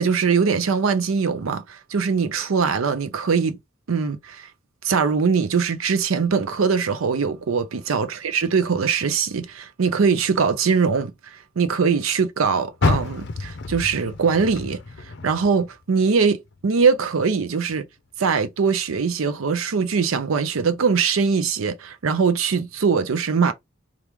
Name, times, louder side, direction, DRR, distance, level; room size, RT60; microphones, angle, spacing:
voice 1, 0.0-3.6 3.9-4.5 4.8-11.1 11.6-14.8 15.2-17.8 18.2-23.5, right 5 dB, 80° right, 0.5 m, -22 dB
Car, 12.8-16.0 16.4-17.8 18.3-18.4 19.0-19.1, left 3 dB, 55° left, 0.5 m, -28 dB
2.9 x 2.4 x 3.4 m
head